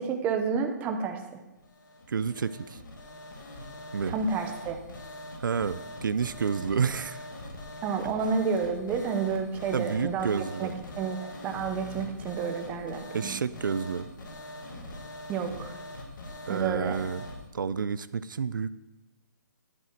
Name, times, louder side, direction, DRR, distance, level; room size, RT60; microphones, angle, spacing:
voice 1, 0.0-1.4 4.1-4.8 7.8-10.7 11.0-13.4 15.3-15.7 16.5-17.0, right 5 dB, 15° right, 5 dB, 0.7 m, -30 dB
sound 1, 1.6-17.4, left 1 dB, 75° left, 2.0 m, -43 dB
voice 2, 2.1-2.8 3.9-4.1 5.4-7.3 9.7-10.7 13.1-14.1 16.5-17.2 17.5-18.7, right 6 dB, 90° right, 15 dB, 0.4 m, -30 dB
10.0 x 7.8 x 4.4 m, 1.1 s
hypercardioid pair, 155°, 10 cm